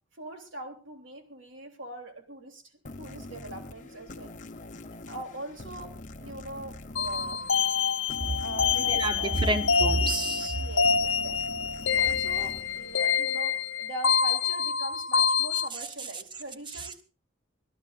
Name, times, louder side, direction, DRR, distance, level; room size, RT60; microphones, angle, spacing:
voice 1, 0.2-2.6 3.0-4.3 4.9-5.9 6.2-7.5 8.4-9.4 10.5-11.6 11.9-17.0, right 1 dB, 80° right, 4 dB, 3.4 m, -42 dB
sound 1, 2.8-14.0, left 2 dB, 40° left, 1.0 m, -45 dB
sound 2, 7.0-15.7, left 6 dB, 80° left, 0.9 m, -26 dB
voice 2, 8.9-10.6 16.7-16.9, right 1 dB, 25° right, 9 dB, 1.2 m, -28 dB
25.5 x 15.5 x 2.6 m, 0.34 s
head